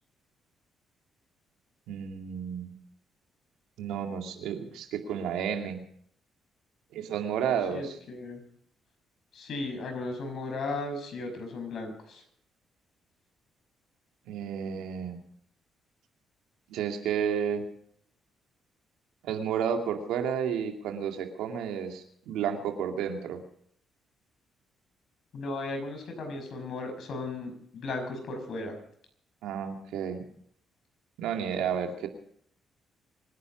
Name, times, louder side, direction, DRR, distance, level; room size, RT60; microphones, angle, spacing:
voice 1, 1.9-2.8 3.8-5.8 6.9-7.9 14.3-15.2 16.7-17.7 19.2-23.4 29.4-30.3 31.2-32.1, right 8 dB, 90° right, 4 dB, 2.3 m, -31 dB
voice 2, 7.7-8.4 9.3-12.2 25.3-28.8, left 2 dB, 65° left, 5 dB, 5.7 m, -36 dB
25.5 x 10.0 x 5.1 m, 0.66 s
cardioid pair, 90°, 0 cm